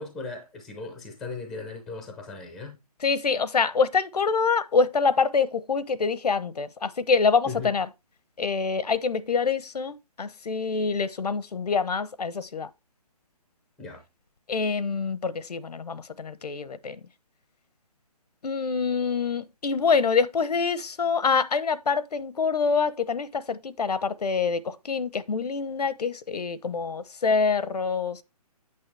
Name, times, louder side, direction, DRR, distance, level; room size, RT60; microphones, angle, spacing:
voice 1, 0.0-2.8 7.4-7.7 13.8-14.0, left 3 dB, ahead, 0.6 m, -37 dB
voice 2, 3.0-7.9 8.4-12.7 14.5-17.0 18.4-28.2, left 5 dB, 80° left, 0.9 m, -25 dB
8.7 x 6.6 x 3.3 m
hypercardioid pair, 170°, 20 cm